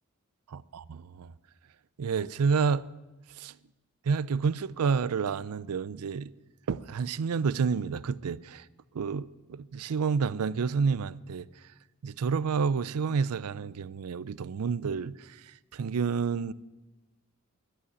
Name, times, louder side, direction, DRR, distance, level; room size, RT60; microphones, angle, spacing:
voice 1, 0.5-1.3 2.0-2.8 3.4-3.5 4.1-6.3 6.7-8.6 8.9-11.5 12.0-15.1 15.7-16.5, right 5 dB, 90° right, 0.4 m, -29 dB
11.5 x 8.5 x 9.4 m
head